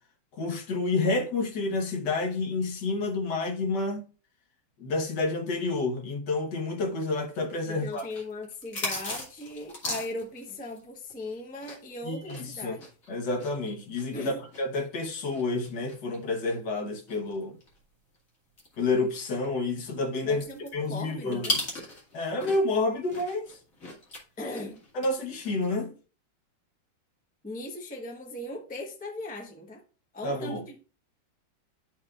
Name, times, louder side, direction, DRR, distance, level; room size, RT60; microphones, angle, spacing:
voice 1, 0.3-4.1 4.8-8.1 12.0-12.8 13.1-17.6 18.8-20.4 20.7-21.6 22.1-23.6 24.9-25.9 30.2-30.6, left 3 dB, 70° left, 1.7 m, -29 dB
sound 1, 7.0-11.9 12.2-17.8 18.1-18.2 18.6-22.8 23.1-25.1 25.4-25.7, left 1 dB, 45° left, 2.4 m, -37 dB
voice 2, 7.7-12.8 14.1-14.4 20.2-20.6 20.9-21.6 24.4-24.8 27.4-29.8 30.1-30.8, left 1 dB, 10° left, 0.6 m, -38 dB
11.5 x 4.4 x 2.4 m
omnidirectional pair, 2.0 m